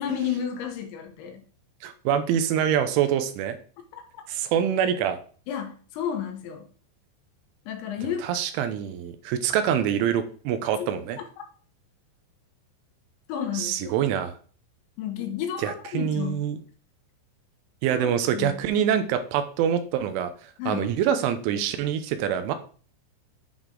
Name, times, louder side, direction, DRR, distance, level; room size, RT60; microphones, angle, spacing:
voice 1, 0.0-1.4 3.9-4.0 5.5-6.7 7.7-8.3 10.8-11.0 13.3-14.0 15.0-16.5 17.9-18.5 20.6-20.9, left 9 dB, 75° left, 4 dB, 3.2 m, -32 dB
voice 2, 1.8-3.6 4.3-5.2 8.2-11.2 13.5-14.4 15.6-16.6 17.8-22.5, right 9 dB, 85° right, 9 dB, 3.2 m, -25 dB
9.8 x 4.0 x 3.8 m, 0.41 s
omnidirectional pair, 5.5 m